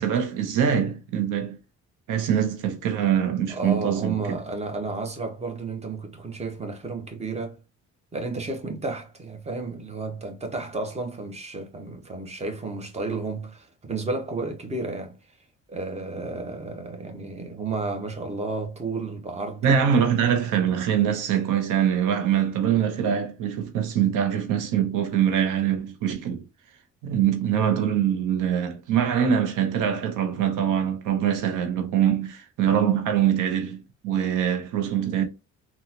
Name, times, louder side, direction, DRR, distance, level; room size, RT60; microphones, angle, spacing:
voice 1, 0.0-1.6 2.1-4.4 19.6-26.4 27.0-35.2, right 9 dB, 90° right, 0.8 m, -23 dB
voice 2, 3.5-7.6 8.1-15.2 15.7-20.0, right 3 dB, 20° right, 1.0 m, -32 dB
3.7 x 2.4 x 2.8 m
cardioid pair, 90°, 30 cm